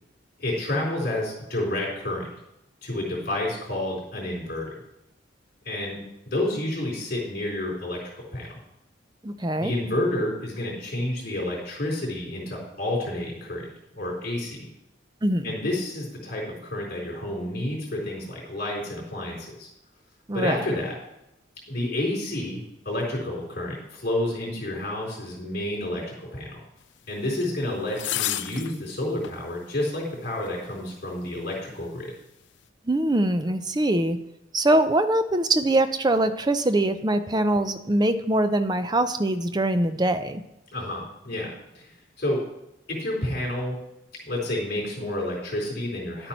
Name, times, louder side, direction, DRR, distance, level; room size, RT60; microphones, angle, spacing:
voice 1, 0.4-2.3 2.8-4.8 5.6-6.0 6.3-8.0 8.3-8.5 9.6-13.6 13.9-14.7 15.4-19.7 20.3-20.9 21.7-26.6 27.1-32.1 40.7-41.9 42.2-42.4 42.9-43.8 44.2-46.3, left 1 dB, 50° left, -4 dB, 3.9 m, -30 dB
voice 2, 9.2-9.7 15.2-15.5 20.3-20.6 32.9-34.2 34.5-40.4, right 1 dB, 20° right, 10 dB, 0.5 m, -23 dB
sound 1, 27.4-27.5 28.0-28.8 29.2-29.4 30.5-30.6, left 13 dB, 65° left, 0.4 m, -29 dB
10.5 x 8.2 x 4.4 m, 0.86 s
head